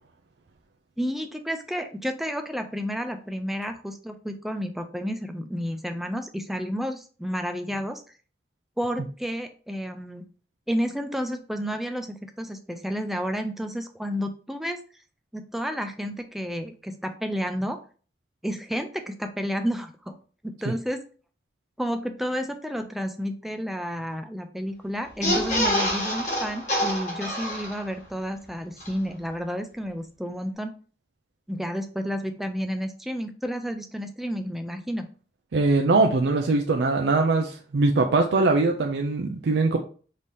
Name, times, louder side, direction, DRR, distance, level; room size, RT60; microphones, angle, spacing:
voice 1, 1.0-8.0 8.8-10.3 10.7-14.8 15.3-17.8 18.4-20.2 20.4-21.0 21.8-30.7 31.5-35.1, equal, ahead, 6 dB, 0.4 m, -31 dB
sound 1, 25.1-28.1 28.4-28.5 28.8-28.9, equal, 40° left, 2.0 m, -27 dB
voice 2, 35.5-39.8, right 3 dB, 80° right, 3 dB, 0.5 m, -22 dB
5.3 x 2.8 x 3.2 m, 0.40 s
head